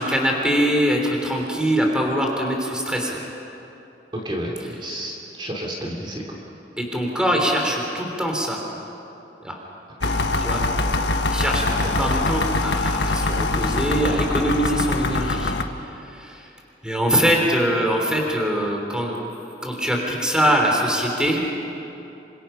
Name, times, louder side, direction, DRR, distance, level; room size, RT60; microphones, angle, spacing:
voice 1, 0.0-3.2 4.6-4.8 6.8-8.6 9.4-9.6 10.4-10.7 11.3-15.5 15.8-16.5 16.8-19.2 19.6-21.4, equal, 5° right, 0 dB, 3.2 m, -23 dB
voice 2, 4.1-6.4 10.0-10.2 11.8-11.9, equal, 30° right, -1 dB, 2.9 m, -31 dB
sound 1, 10.0-15.6, left 2 dB, 80° left, 1.3 m, -23 dB
28.0 x 25.5 x 5.7 m, 2.9 s
head